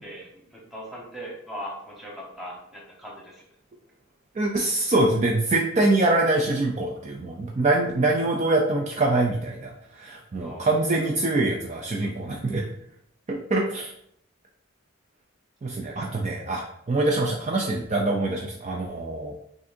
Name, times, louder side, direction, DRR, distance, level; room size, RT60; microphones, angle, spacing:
voice 1, 0.0-3.4 10.4-10.7, equal, ahead, -4 dB, 1.1 m, -39 dB
voice 2, 4.4-12.7 13.3-13.9 15.6-19.3, right 2 dB, 35° right, -1 dB, 0.4 m, -24 dB
6.1 x 2.5 x 2.6 m, 0.71 s
head